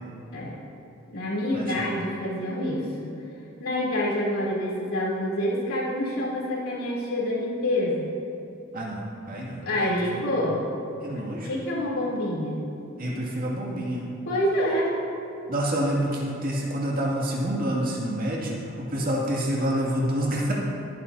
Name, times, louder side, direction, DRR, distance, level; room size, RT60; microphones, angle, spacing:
voice 1, 1.1-3.1 3.6-8.1 9.6-10.7 11.2-12.7 14.3-15.0, left 1 dB, 90° left, -5 dB, 3.4 m, -27 dB
voice 2, 8.7-9.9 10.3-10.4 11.0-11.5 13.0-14.0 15.5-18.6 18.9-20.5, right 1 dB, 40° right, -4 dB, 2.4 m, -27 dB
24.5 x 10.0 x 2.8 m, 2.7 s
head